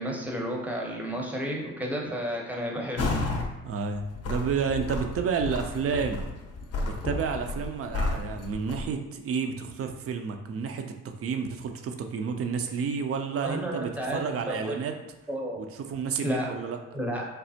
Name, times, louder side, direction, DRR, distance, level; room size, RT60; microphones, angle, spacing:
voice 1, 0.0-3.1 13.4-14.8 15.3-15.6 16.2-16.5 16.9-17.3, equal, 5° right, -1 dB, 0.7 m, -32 dB
sound 1, 3.0-3.5 3.9-8.9, left 2 dB, 40° left, 0.6 m, -32 dB
voice 2, 3.6-6.2 6.8-14.9 15.6-16.8, right 6 dB, 40° right, 5 dB, 0.4 m, -30 dB
3.2 x 2.0 x 2.7 m, 1.0 s
hypercardioid pair, 50°, 38 cm